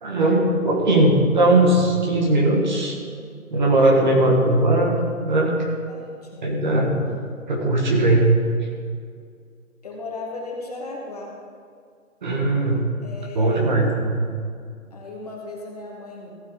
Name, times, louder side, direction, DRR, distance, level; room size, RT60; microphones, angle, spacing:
voice 1, 0.0-3.0 3.5-5.6 6.4-7.0 7.5-8.3 12.2-12.8 13.3-14.3, right 1 dB, 35° right, 0 dB, 1.6 m, -19 dB
voice 2, 3.8-4.2 5.9-6.5 9.8-11.3 13.0-13.8 14.9-16.4, left 3 dB, 30° left, -1 dB, 1.2 m, -36 dB
15.0 x 8.9 x 3.7 m, 2.2 s
hypercardioid pair, 165°, 41 cm